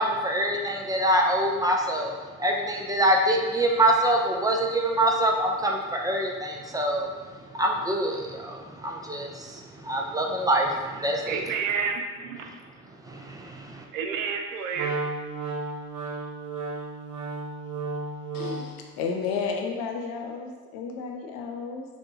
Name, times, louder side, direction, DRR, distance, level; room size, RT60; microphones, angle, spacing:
voice 1, 0.0-2.1 2.4-7.1 7.5-11.4 13.1-13.8, right 1 dB, 10° right, 1 dB, 0.5 m, -25 dB
voice 2, 11.3-12.6 13.9-15.0, right 5 dB, 70° right, 4 dB, 0.6 m, -30 dB
Wind instrument woodwind instrument, 14.7-18.8, right 3 dB, 45° right, 1.0 m, -33 dB
voice 3, 18.3-21.9, left 5 dB, 60° left, 2 dB, 0.7 m, -32 dB
5.5 x 2.5 x 2.8 m, 1.5 s
figure-of-eight pair, 55°, 41 cm